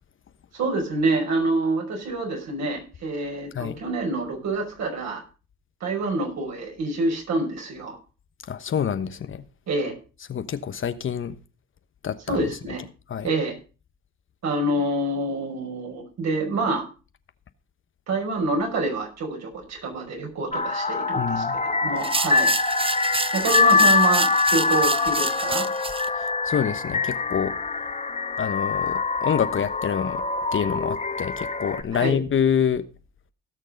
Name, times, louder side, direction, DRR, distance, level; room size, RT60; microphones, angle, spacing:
voice 1, 0.5-5.2 5.8-8.0 9.7-9.9 12.3-12.8 13.2-13.5 14.4-16.8 18.1-22.5 23.3-25.7 31.9-32.2, right 2 dB, 55° right, 1 dB, 5.8 m, -27 dB
voice 2, 8.5-9.4 10.3-11.4 12.0-12.5 13.1-13.3 21.2-21.6 26.2-27.5 28.4-30.2 30.5-32.8, left 8 dB, 40° left, 11 dB, 1.1 m, -26 dB
sound 1, 20.5-31.8, left 4 dB, 20° left, 1.6 m, -24 dB
sound 2, 22.0-26.1, right 4 dB, 15° right, 0.7 m, -29 dB
17.0 x 6.5 x 5.2 m, 0.35 s
supercardioid pair, 85°, 32 cm